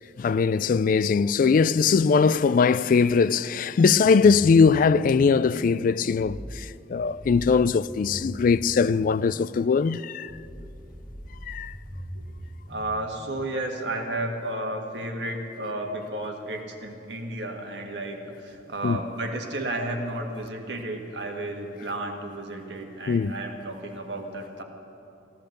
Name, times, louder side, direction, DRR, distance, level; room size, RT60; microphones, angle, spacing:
voice 1, 0.2-10.3 11.5-11.7 18.8-19.0 23.1-23.3, left 5 dB, 50° left, 0.3 m, -21 dB
sound 1, 4.0-13.8, equal, 5° right, 2.9 m, -41 dB
voice 2, 12.7-24.6, right 1 dB, 80° right, 1.7 m, -32 dB
15.5 x 12.0 x 6.6 m
head